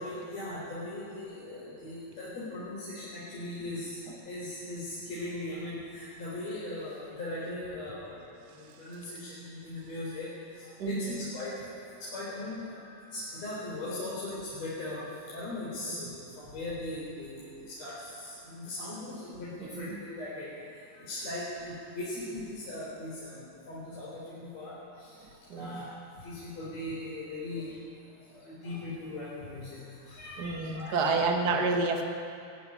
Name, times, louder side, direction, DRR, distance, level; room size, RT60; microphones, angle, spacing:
voice 1, 0.0-4.0 4.3-8.2 8.5-20.5 20.9-24.7 25.0-25.1 25.5-25.9 26.2-27.7 28.3-31.2, left 1 dB, 45° left, -8 dB, 5.2 m, -39 dB
voice 2, 10.8-11.2 15.9-16.0 19.6-20.0 25.5-25.8 30.4-32.0, right 3 dB, 55° right, 2 dB, 1.1 m, -29 dB
19.0 x 15.0 x 10.0 m, 2.6 s
omnidirectional pair, 4.5 m